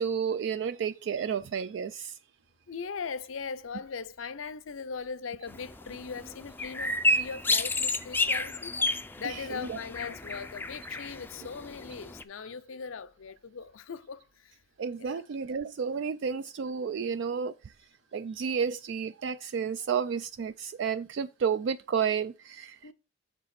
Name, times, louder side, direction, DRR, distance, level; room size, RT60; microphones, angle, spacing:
voice 1, 0.0-2.2 9.2-9.8 14.8-17.7 18.1-22.8, right 6 dB, 60° right, 0.3 m, -31 dB
voice 2, 2.7-8.8 9.1-14.6 15.0-15.2 22.8-22.9, left 5 dB, 90° left, 0.6 m, -39 dB
sound 1, 5.5-12.2, left 2 dB, 10° left, 0.4 m, -31 dB
7.3 x 4.0 x 5.9 m
head